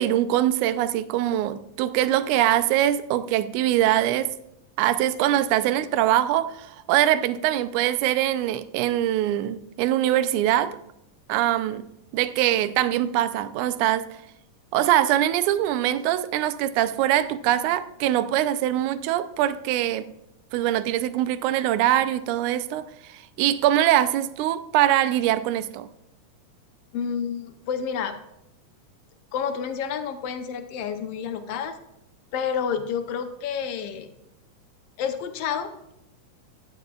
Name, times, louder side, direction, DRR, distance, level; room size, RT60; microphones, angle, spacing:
voice 1, 0.0-4.3 4.8-10.8 11.3-11.8 12.1-14.1 14.7-20.1 20.5-25.9, right 12 dB, 80° right, 12 dB, 1.9 m, -23 dB
voice 2, 26.9-28.2 29.3-31.8 32.3-34.1 35.0-35.9, left 7 dB, 85° left, 6 dB, 1.3 m, -29 dB
14.5 x 10.5 x 2.4 m, 0.83 s
omnidirectional pair, 3.8 m